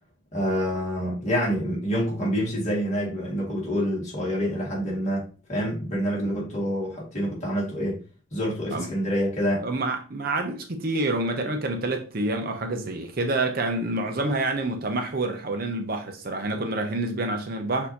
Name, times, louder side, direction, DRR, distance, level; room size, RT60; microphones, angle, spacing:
voice 1, 0.3-5.2 5.5-8.0 8.3-9.6, equal, 35° left, 1.9 m, -27 dB
voice 2, 9.6-17.9, right 2 dB, 45° right, 0.6 m, -27 dB
6.3 x 2.7 x 2.8 m
head